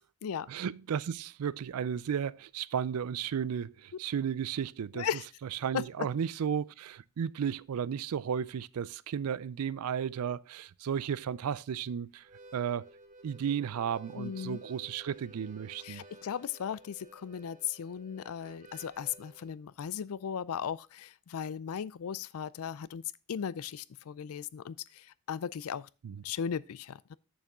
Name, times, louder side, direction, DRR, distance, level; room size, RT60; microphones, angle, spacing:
voice 1, 0.5-5.1 5.5-12.2 12.5-12.9 13.2-16.0 26.0-26.2, right 8 dB, 90° right, 0.4 m, -34 dB
voice 2, 4.9-5.3 5.7-5.8 14.1-14.6 15.8-23.0 23.3-25.9 26.2-27.2, left 8 dB, 75° left, 0.4 m, -37 dB
Harmonica, 12.2-19.5, right 1 dB, 35° right, 1.1 m, -54 dB
8.4 x 6.8 x 3.5 m
head